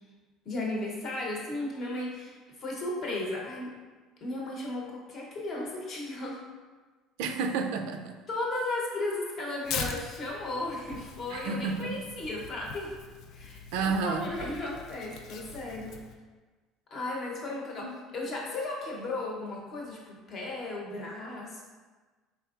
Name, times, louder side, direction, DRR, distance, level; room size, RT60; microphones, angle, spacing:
voice 1, 0.4-3.7 4.2-6.4 8.3-12.9 13.3-16.0 16.9-21.6, left 2 dB, 30° left, -2 dB, 0.8 m, -35 dB
voice 2, 7.2-8.2 11.3-11.9 13.7-14.3, right 4 dB, 85° right, 5 dB, 0.3 m, -30 dB
Tearing, 9.6-16.1, left 5 dB, 55° left, 0.3 m, -41 dB
4.3 x 3.5 x 2.4 m, 1.3 s
cardioid pair, 170°, 0 cm